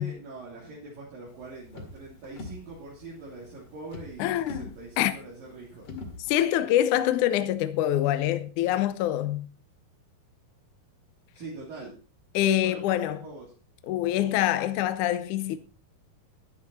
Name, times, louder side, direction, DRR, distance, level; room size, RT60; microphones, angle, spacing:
voice 1, 0.0-5.9 11.3-11.9 12.6-13.5, right 3 dB, 65° right, 5.0 m, -43 dB
sound 1, 1.3-6.4, left 2 dB, 50° left, 2.8 m, -45 dB
voice 2, 4.2-4.7 5.0-5.1 5.9-6.0 6.3-9.5 12.3-13.2 13.9-15.6, left 12 dB, 75° left, 2.0 m, -25 dB
12.5 x 11.0 x 4.2 m
omnidirectional pair, 4.4 m